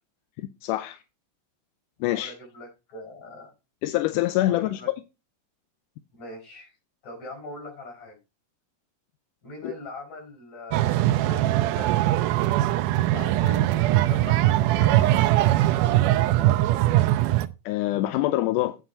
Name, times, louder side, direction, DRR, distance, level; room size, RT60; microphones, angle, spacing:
voice 1, 0.6-1.0 2.0-2.3 3.8-4.8 9.6-9.7 17.7-18.8, left 16 dB, 80° left, 2.1 m, -25 dB
voice 2, 2.1-3.5 4.4-4.9 6.1-6.7 7.0-8.2 9.4-12.4 13.1-16.1, left 1 dB, 55° left, 6.5 m, -41 dB
sound 1, 10.7-17.5, right 15 dB, 80° right, 2.1 m, -21 dB
8.8 x 7.3 x 4.3 m
omnidirectional pair, 3.8 m